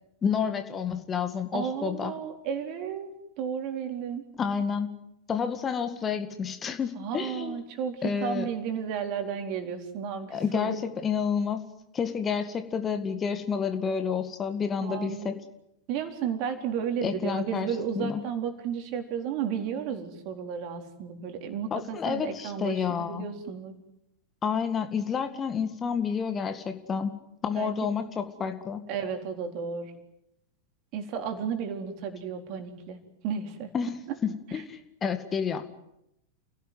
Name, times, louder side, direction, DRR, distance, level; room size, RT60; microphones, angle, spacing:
voice 1, 0.2-2.1 4.4-4.9 5.3-7.6 8.0-8.5 10.3-11.6 11.9-15.4 17.0-18.2 21.7-23.3 24.4-27.2 27.4-28.8 33.7-33.9 34.2-35.6, left 6 dB, 20° left, 8 dB, 2.0 m, -29 dB
voice 2, 1.5-4.3 7.0-10.8 14.8-15.3 15.9-23.7 27.5-27.9 28.9-29.9 30.9-33.7 34.1-34.2, right 7 dB, 40° right, 5 dB, 4.1 m, -33 dB
29.5 x 17.5 x 9.6 m, 0.83 s
figure-of-eight pair, 90°, 0 cm